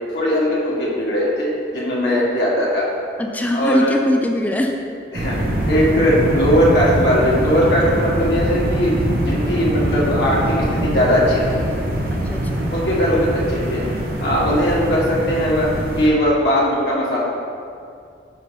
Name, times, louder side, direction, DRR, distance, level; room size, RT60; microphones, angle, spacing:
voice 1, 0.1-2.9 3.5-3.9 5.1-10.4 10.8-11.6 12.7-13.8 14.2-17.2, equal, 70° left, -6 dB, 1.6 m, -19 dB
voice 2, 3.2-4.7 12.1-12.7, left 1 dB, 10° left, 3 dB, 0.4 m, -21 dB
sound 1, 5.1-16.1, right 1 dB, 55° right, 0.9 m, -23 dB
6.6 x 5.7 x 3.4 m, 2.4 s
head